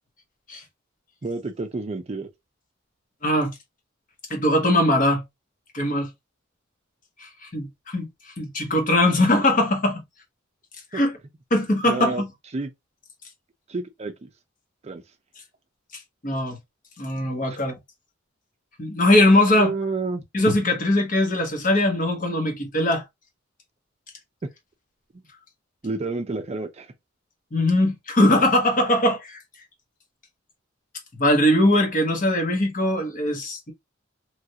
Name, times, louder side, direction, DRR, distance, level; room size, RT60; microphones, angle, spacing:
voice 1, 1.2-2.3 10.9-11.0 11.8-12.2 12.5-12.7 13.7-14.3 14.8-15.0 19.6-20.2 24.4-24.5 25.8-26.9, right 3 dB, 30° right, 0.4 m, -29 dB
voice 2, 3.2-3.5 4.3-5.2 5.7-6.1 7.2-8.0 8.4-10.0 10.9-11.1 11.5-12.3 16.2-16.6 17.0-17.8 18.8-19.7 20.3-23.0 27.5-29.4 31.1-33.7, left 1 dB, 40° left, 1.0 m, -21 dB
3.1 x 2.5 x 2.7 m
head